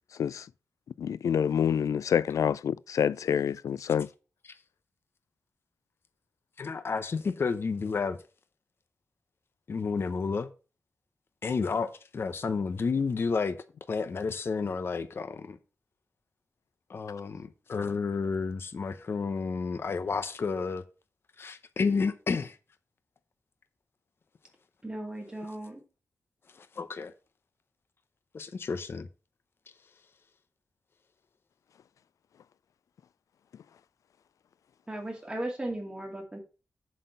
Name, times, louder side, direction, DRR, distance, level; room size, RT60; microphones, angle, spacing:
voice 1, 1.0-4.1, left 8 dB, 85° left, 0.3 m, -27 dB
voice 2, 6.6-8.2 9.7-10.5 11.4-13.6 13.9-15.6 16.9-20.8 21.4-22.6 26.5-27.1 28.3-29.1, left 5 dB, 45° left, 0.6 m, -31 dB
voice 3, 24.8-25.8 34.9-36.4, right 1 dB, 15° right, 2.4 m, -36 dB
7.6 x 4.3 x 6.7 m
wide cardioid pair, 150°, 5 cm